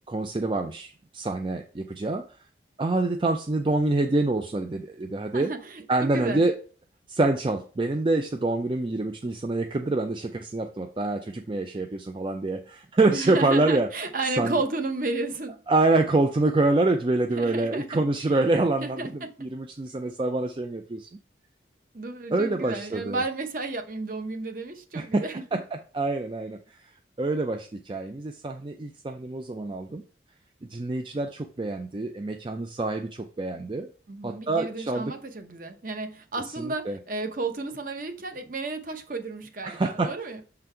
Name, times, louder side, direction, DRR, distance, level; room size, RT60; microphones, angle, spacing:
voice 1, 0.1-2.2 2.8-5.5 5.9-6.6 7.1-13.9 14.4-14.5 15.7-21.1 22.3-23.2 24.9-25.2 25.5-26.8 27.2-30.0 30.7-33.9 34.2-35.1 36.6-37.0 39.6-40.1, right 2 dB, 25° right, 0.4 m, -26 dB
voice 2, 5.3-6.4 13.1-15.6 17.3-18.0 18.8-19.3 21.9-25.4 34.1-40.4, right 3 dB, 45° right, 0.9 m, -32 dB
6.6 x 3.9 x 4.4 m
head